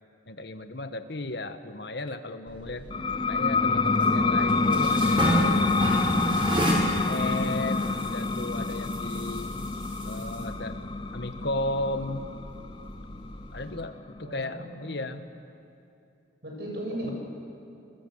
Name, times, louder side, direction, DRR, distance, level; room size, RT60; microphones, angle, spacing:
voice 1, 0.3-2.9 3.3-5.6 6.9-9.5 10.0-10.8 11.1-12.3 13.5-15.2, left 2 dB, 65° left, 9 dB, 1.4 m, -34 dB
sound 1, 2.5-13.7, right 1 dB, 30° right, 5.6 m, -33 dB
sound 2, 2.9-14.2, left 3 dB, 25° left, 0.5 m, -27 dB
voice 2, 14.2-14.9 16.4-17.1, right 1 dB, 60° right, -1 dB, 7.4 m, -36 dB
27.5 x 21.0 x 8.0 m, 2.8 s
head